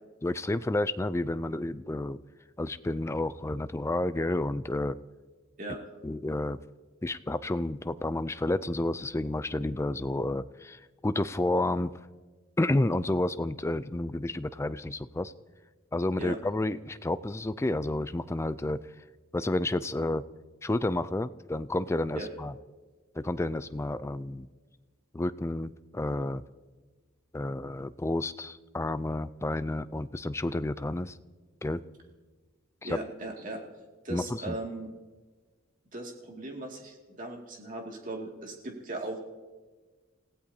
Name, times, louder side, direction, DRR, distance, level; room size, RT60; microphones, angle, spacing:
voice 1, 0.2-2.2 2.6-5.0 6.0-6.6 7.0-11.9 12.6-15.3 15.9-18.8 19.3-20.2 20.6-22.5 23.2-24.5 25.1-26.4 27.3-31.2 31.6-31.8 32.8-33.0 34.1-34.6, left 2 dB, 15° left, 14 dB, 0.4 m, -30 dB
voice 2, 32.8-33.6 34.0-34.9 35.9-39.2, right 2 dB, 40° right, 0 dB, 2.3 m, -38 dB
29.5 x 16.0 x 2.8 m, 1.3 s
head